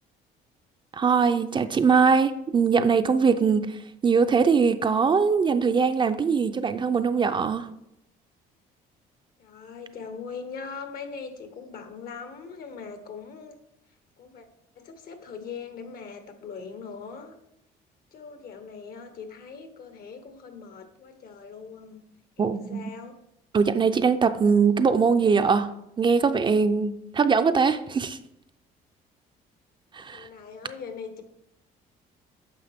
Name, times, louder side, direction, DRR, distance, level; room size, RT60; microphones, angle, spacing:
voice 1, 0.9-3.8 4.0-7.7 22.4-22.9 23.5-25.7 26.0-28.2 29.9-30.3, right 5 dB, 30° right, 9 dB, 0.5 m, -22 dB
voice 2, 9.4-13.6 14.2-14.5 14.7-17.4 18.1-22.0 22.4-23.2 30.1-31.2, left 5 dB, 60° left, 8 dB, 1.2 m, -41 dB
9.6 x 6.2 x 3.6 m, 0.81 s
cardioid pair, 110°, 17 cm